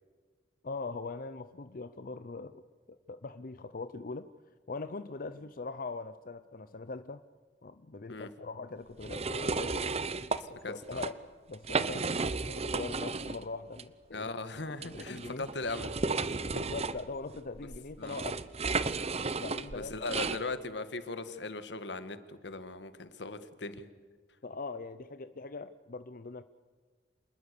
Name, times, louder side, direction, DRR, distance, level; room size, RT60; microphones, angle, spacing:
voice 1, 0.6-4.3 4.7-7.2 7.6-9.9 10.7-11.2 11.5-14.3 14.7-15.5 16.5-18.4 19.4-19.9 24.4-26.4, left 3 dB, 55° left, 11 dB, 0.7 m, -41 dB
sound 1, 9.0-10.4 10.8-11.1 11.5-13.4 13.7-13.8 14.8-20.4, right 4 dB, 35° right, 0.9 m, -33 dB
voice 2, 10.3-11.0 14.1-15.9 18.0-18.2 19.7-23.9, left 3 dB, 80° left, 11 dB, 1.6 m, -39 dB
27.5 x 20.0 x 6.8 m, 1.5 s
head